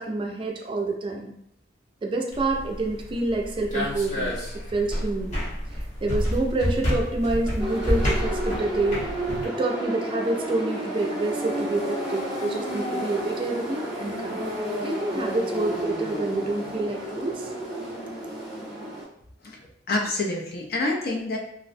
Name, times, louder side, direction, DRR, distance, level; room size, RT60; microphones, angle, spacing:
voice 1, 0.0-1.4 2.0-5.4 5.8-9.1 9.4-14.5 14.8-17.5, right 2 dB, 30° right, 2 dB, 0.3 m, -28 dB
sound 1, 2.3-9.4, equal, 40° left, 0.9 m, -29 dB
sound 2, 7.6-19.0, equal, 5° right, 0.7 m, -31 dB
voice 2, 19.9-21.4, left 2 dB, 55° left, 0 dB, 0.5 m, -27 dB
2.4 x 2.1 x 2.5 m, 0.74 s
head